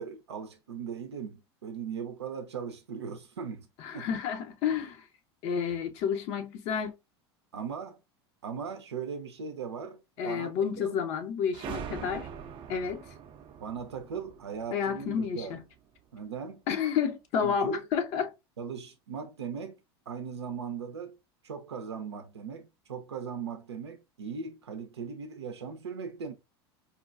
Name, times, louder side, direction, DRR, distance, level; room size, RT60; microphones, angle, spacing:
voice 1, 0.0-3.7 3.9-4.1 7.5-8.0 8.4-10.0 10.2-11.0 13.6-15.6 16.1-16.6 17.4-17.8 18.6-19.8 20.1-21.2 21.4-26.3, right 6 dB, 90° right, 0.5 m, -38 dB
voice 2, 3.8-5.0 5.4-6.9 10.2-12.3 12.7-13.0 14.7-15.6 16.7-18.3, left 7 dB, 55° left, 0.7 m, -30 dB
sound 1, 11.5-16.0, right 8 dB, 40° right, 0.5 m, -43 dB
4.3 x 2.2 x 2.4 m
hypercardioid pair, 85°, 14 cm